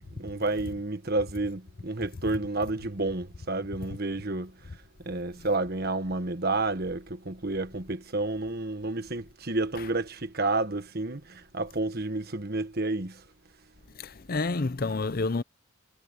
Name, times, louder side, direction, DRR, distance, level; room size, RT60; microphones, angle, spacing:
voice 1, 0.0-4.6 5.0-13.2, right 2 dB, 50° right, 1.5 m, -30 dB
voice 2, 14.0-15.4, left 3 dB, 45° left, 0.7 m, -29 dB
head